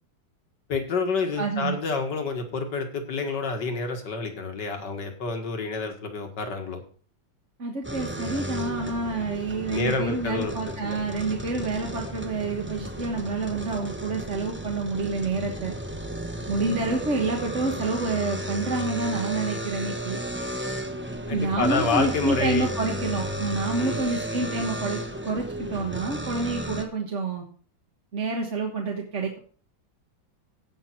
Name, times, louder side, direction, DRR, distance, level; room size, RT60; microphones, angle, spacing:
voice 1, 0.7-6.8 9.7-10.5 10.8-11.0 21.3-22.7 23.8-24.1, left 4 dB, 65° left, 4 dB, 2.3 m, -28 dB
voice 2, 1.4-1.8 7.6-15.7 16.5-20.2 21.3-27.4 28.1-29.4, right 3 dB, 40° right, 1 dB, 1.5 m, -28 dB
sound 1, 7.8-26.8, right 1 dB, 15° right, 0.3 m, -34 dB
17.0 x 5.8 x 4.5 m, 0.43 s
omnidirectional pair, 2.1 m